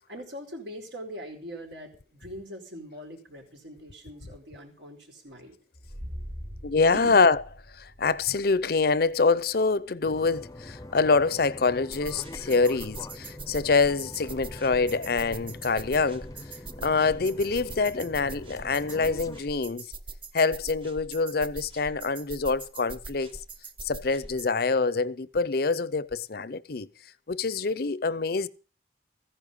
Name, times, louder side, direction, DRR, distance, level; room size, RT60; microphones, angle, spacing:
voice 1, 0.0-5.6 6.9-7.1, equal, 80° right, 4.7 m, -42 dB
sound 1, 5.8-17.1, equal, 60° right, 3.4 m, -50 dB
voice 2, 6.6-7.4 7.8-16.3 16.8-19.9 20.3-23.4 23.8-26.9 27.3-28.5, left 4 dB, 60° left, 0.6 m, -25 dB
sound 2, 10.0-19.4, left 1 dB, 20° left, 0.6 m, -43 dB
sound 3, 11.9-24.5, right 3 dB, 30° right, 0.8 m, -43 dB
15.0 x 10.0 x 5.4 m
head